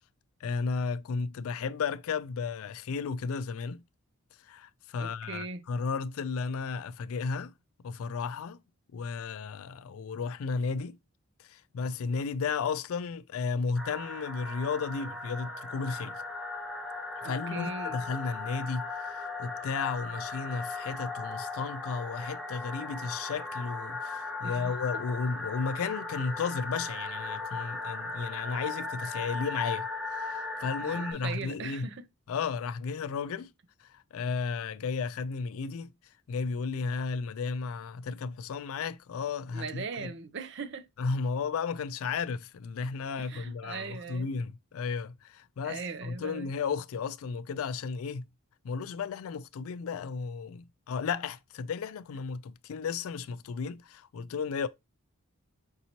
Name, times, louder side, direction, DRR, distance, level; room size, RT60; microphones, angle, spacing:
voice 1, 0.4-3.8 4.4-7.5 7.8-8.6 8.9-11.0 11.4-16.2 17.2-31.9 32.3-33.5 33.8-35.9 36.3-40.1 41.0-48.2 48.6-54.7, left 5 dB, 70° left, 0.3 m, -34 dB
voice 2, 5.0-5.6 17.2-18.0 24.4-24.7 30.8-32.1 39.5-40.9 43.2-44.3 45.6-46.5, right 4 dB, 50° right, 0.5 m, -39 dB
sound 1, 13.8-31.1, left 3 dB, ahead, 0.7 m, -37 dB
5.3 x 2.8 x 2.9 m
head